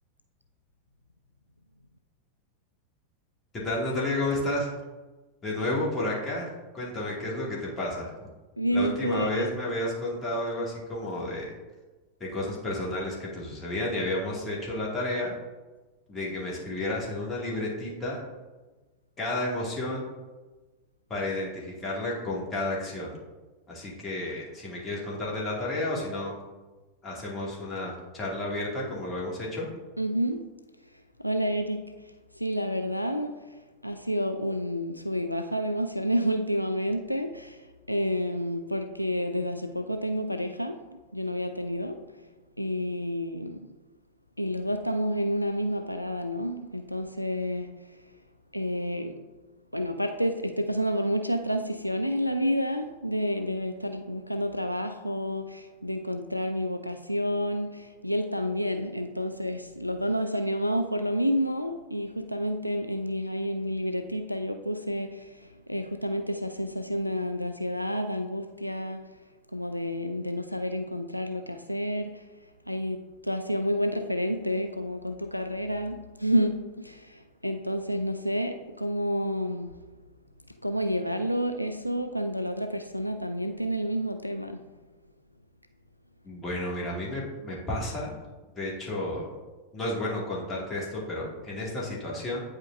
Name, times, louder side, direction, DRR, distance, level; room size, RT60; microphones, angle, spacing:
voice 1, 3.5-4.7 5.4-8.3 8.7-11.5 12.2-15.3 16.1-18.2 19.2-20.1 21.1-23.2 23.7-26.3 27.0-29.7 86.2-88.1 88.6-89.3 89.7-92.4, left 1 dB, 25° left, 2.1 m, -31 dB
voice 2, 8.6-9.5 30.0-30.5 31.2-42.1 42.6-43.7 44.4-48.0 48.5-49.2 49.7-69.1 69.5-72.3 72.7-79.8 80.6-84.6, equal, 90° left, 0.3 m, -30 dB
9.0 x 5.0 x 2.6 m
figure-of-eight pair, 90°, 0 cm